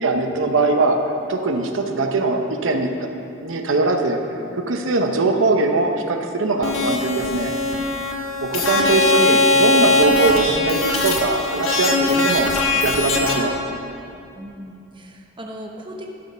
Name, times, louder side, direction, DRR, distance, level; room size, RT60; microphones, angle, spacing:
voice 1, 0.0-1.0 1.3-3.1 3.4-4.2 4.5-7.5 8.4-12.5 12.8-13.6, right 3 dB, 85° right, 4 dB, 0.8 m, -21 dB
sound 1, 6.6-13.3, left 2 dB, 90° left, 1.3 m, -20 dB
voice 2, 14.3-16.1, equal, 25° right, 1 dB, 0.9 m, -37 dB
11.5 x 6.6 x 5.5 m, 2.7 s
head